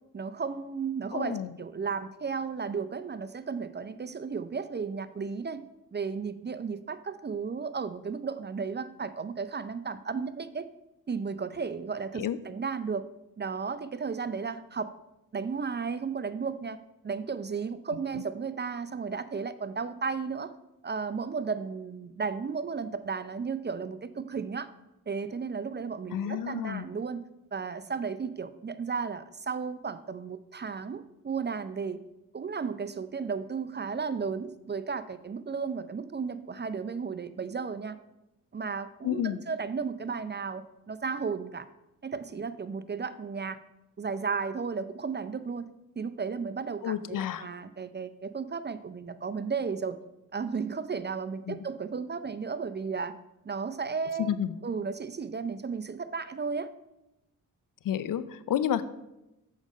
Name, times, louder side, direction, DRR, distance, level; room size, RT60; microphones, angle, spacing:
voice 1, 0.1-5.6 5.9-10.6 11.1-13.1 13.4-14.9 15.3-16.8 17.0-20.5 20.8-24.7 25.1-27.2 27.5-32.0 32.3-38.0 38.5-41.7 42.0-43.6 44.0-45.7 46.0-50.0 50.3-53.1 53.4-54.4 54.6-56.7, right 5 dB, 25° right, 13 dB, 0.5 m, -34 dB
voice 2, 1.1-1.5 12.2-12.4 26.1-26.9 39.0-39.4 46.8-47.5 51.5-51.6 54.2-54.5 57.8-58.8, left 10 dB, 55° left, 14 dB, 0.6 m, -30 dB
7.2 x 5.1 x 5.2 m, 0.91 s
hypercardioid pair, 40°, 39 cm